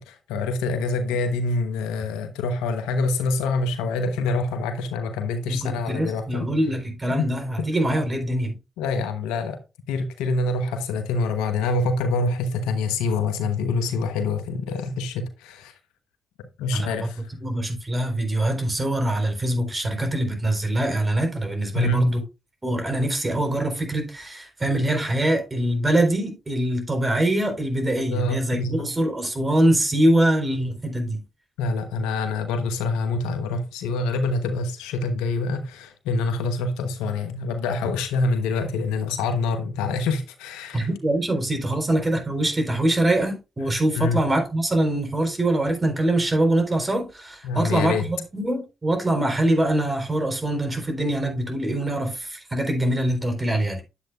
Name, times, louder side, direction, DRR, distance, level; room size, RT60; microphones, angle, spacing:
voice 1, 0.0-6.5 7.1-7.7 8.8-9.6 9.9-15.7 16.6-17.3 21.7-22.1 28.1-28.9 31.6-40.9 43.9-44.2 47.4-48.0, left 3 dB, 90° left, 1.1 m, -26 dB
voice 2, 5.5-8.6 16.7-17.1 17.4-22.2 22.6-31.2 40.7-53.8, right 1 dB, 35° right, 4.0 m, -23 dB
10.0 x 7.8 x 2.4 m
hypercardioid pair, 40°, 0 cm